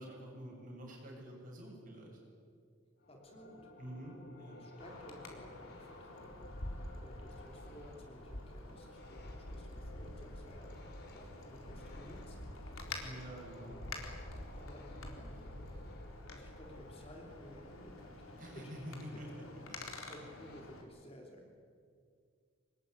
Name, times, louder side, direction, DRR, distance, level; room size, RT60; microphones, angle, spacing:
voice 1, 0.0-2.2 3.8-4.6 13.0-13.8 18.4-19.4, equal, 40° right, -1 dB, 7.7 m, -48 dB
sound 1, 3.0-20.6, left 1 dB, 50° left, 3.3 m, -56 dB
voice 2, 3.1-4.1 4.5-13.0 13.6-13.8 14.5-15.9 16.3-18.7 19.1-19.5 19.9-21.5, equal, 30° left, 1 dB, 3.1 m, -56 dB
Wind, 4.8-20.8, left 2 dB, 90° left, 4.0 m, -48 dB
25.5 x 21.0 x 9.5 m, 2.2 s
head